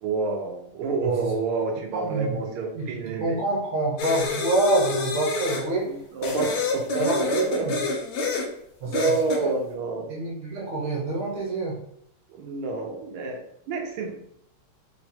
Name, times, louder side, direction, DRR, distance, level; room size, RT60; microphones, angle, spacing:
voice 1, 0.0-3.4 5.9-7.7 8.3-8.4 8.9-10.1 12.3-14.1, right 4 dB, 85° right, 3 dB, 1.7 m, -29 dB
voice 2, 1.9-2.4 2.7-5.9 7.0-7.8 8.8-9.0 9.4-9.5 10.1-11.8, right 2 dB, 60° right, -2 dB, 1.9 m, -27 dB
sound 1, 4.0-5.7 6.2-8.5 8.9-9.4, left 3 dB, 80° left, 1.6 m, -27 dB
4.5 x 2.2 x 4.3 m, 0.71 s
omnidirectional pair, 2.4 m